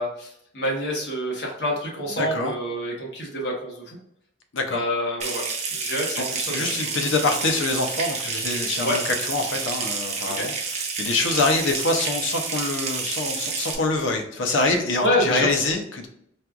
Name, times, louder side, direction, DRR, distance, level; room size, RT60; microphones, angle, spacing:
voice 1, 0.0-4.0 4.7-5.4 5.8-6.7 8.8-9.0 10.2-10.5 15.0-15.5, equal, 60° left, -2 dB, 1.1 m, -27 dB
voice 2, 2.2-2.5 4.5-4.8 6.1-9.0 9.3-16.1, left 3 dB, 85° left, 5 dB, 0.6 m, -25 dB
Water tap faucet / Sink (filling or washing) / Trickle dribble, 5.2-13.8, right 4 dB, 35° right, 0.5 m, -29 dB
4.2 x 2.3 x 2.4 m, 0.74 s
head